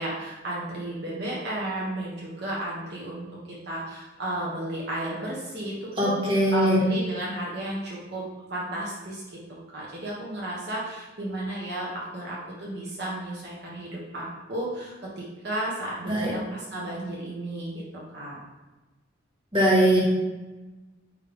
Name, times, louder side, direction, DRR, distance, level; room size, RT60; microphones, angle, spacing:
voice 1, 0.0-17.8 18.1-18.4, right 1 dB, 60° right, -5 dB, 1.2 m, -33 dB
voice 2, 6.0-6.8 16.1-16.3 19.5-20.0, right 1 dB, 30° right, -6 dB, 1.8 m, -21 dB
9.0 x 3.2 x 3.5 m, 1.2 s
head